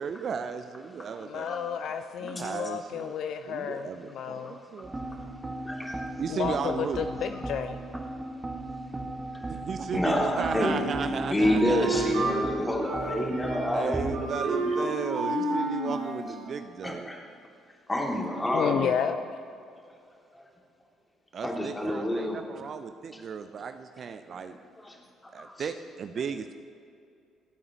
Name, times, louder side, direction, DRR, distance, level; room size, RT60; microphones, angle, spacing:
voice 1, 0.0-1.8 2.2-3.1 3.5-4.9 6.2-7.1 9.5-12.3 13.7-17.1 21.3-24.6 25.3-26.5, right 6 dB, 50° right, 9 dB, 0.5 m, -35 dB
voice 2, 1.2-4.6 6.3-7.8 18.5-19.4, left 8 dB, 60° left, 8 dB, 0.4 m, -31 dB
sound 1, 4.8-14.2, right 2 dB, 15° right, 1.5 m, -37 dB
voice 3, 5.6-6.1 9.4-9.5 9.9-10.8 11.3-14.9 16.8-17.2 17.9-18.9 20.3-20.5 21.4-22.4 23.1-23.2 24.3-24.5 24.8-25.0 25.4-25.5, left 1 dB, 20° left, -2 dB, 2.9 m, -29 dB
Wind instrument woodwind instrument, 10.3-12.4 12.8-13.9 14.1-16.3, right 2 dB, 70° right, 2.5 m, -31 dB
26.0 x 8.7 x 3.0 m, 2.4 s
figure-of-eight pair, 45°, 0 cm